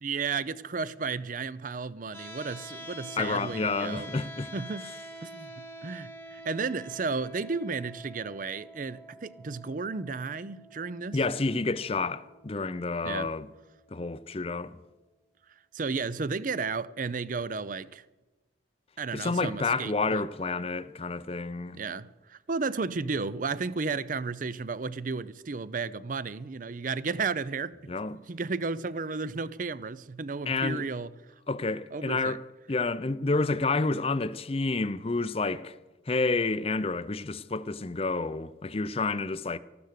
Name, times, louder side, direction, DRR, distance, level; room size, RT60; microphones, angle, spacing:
voice 1, 0.0-4.2 4.5-4.9 5.2-11.2 13.0-13.3 15.7-18.0 19.0-20.2 21.7-31.1 31.9-32.4, right 4 dB, 45° right, 0.5 m, -33 dB
sound 1, 2.1-14.1, right 1 dB, 10° left, 1.2 m, -47 dB
voice 2, 3.2-4.5 11.1-13.5 13.9-14.8 19.1-21.8 27.9-28.2 30.5-30.9 31.5-32.4 32.7-35.7 36.1-39.6, left 3 dB, 30° left, 0.5 m, -29 dB
13.5 x 12.5 x 6.5 m
head